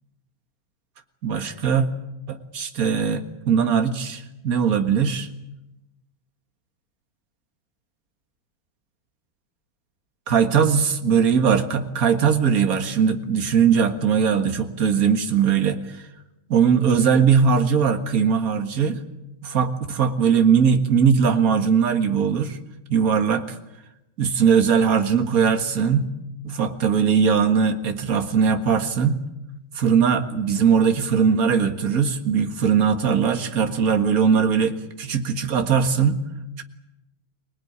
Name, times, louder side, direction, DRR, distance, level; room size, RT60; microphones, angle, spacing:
voice 1, 1.2-1.9 2.3-5.3 10.3-15.8 16.5-19.0 19.4-22.6 22.9-23.5 24.2-26.1 26.4-29.3 29.8-36.2 36.6-36.7, right 6 dB, 45° right, 6 dB, 2.1 m, -20 dB
25.5 x 19.0 x 9.7 m, 0.94 s
omnidirectional pair, 2.2 m